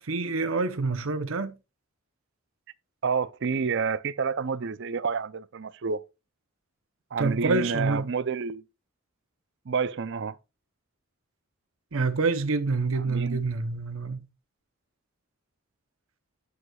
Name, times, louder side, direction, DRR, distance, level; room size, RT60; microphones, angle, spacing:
voice 1, 0.0-1.5 7.2-8.1 11.9-14.2, right 3 dB, 80° right, 0.9 m, -27 dB
voice 2, 3.0-6.0 7.1-8.6 9.7-10.4 12.9-13.4, right 5 dB, 60° right, 0.5 m, -29 dB
10.5 x 7.9 x 2.4 m
head